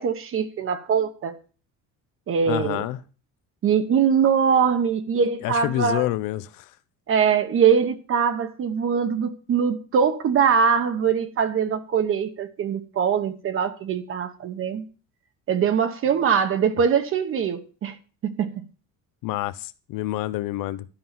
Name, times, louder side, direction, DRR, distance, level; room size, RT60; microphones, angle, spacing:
voice 1, 0.0-1.4 2.3-2.8 3.6-6.0 7.1-14.8 15.5-18.0 18.2-18.6, right 7 dB, 40° right, 1.0 m, -22 dB
voice 2, 2.5-3.0 5.4-6.7 19.2-20.9, left 16 dB, 75° left, 0.7 m, -28 dB
12.0 x 5.5 x 7.4 m
cardioid pair, 155°, 33 cm